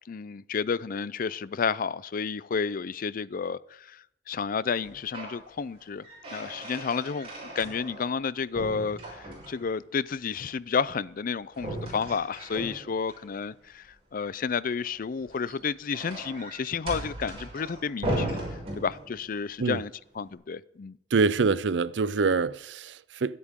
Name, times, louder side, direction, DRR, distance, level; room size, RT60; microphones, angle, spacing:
voice 1, 0.1-13.9 14.1-18.4 18.8-19.9 20.2-21.0, left 5 dB, 50° left, 0.4 m, -31 dB
sound 1, 4.8-5.4 5.8-8.2 8.5-9.8 11.5-13.2 15.2-19.4, right 1 dB, 35° right, 6.2 m, -37 dB
voice 2, 21.1-23.4, right 4 dB, 80° right, 0.5 m, -25 dB
22.5 x 8.5 x 3.7 m
head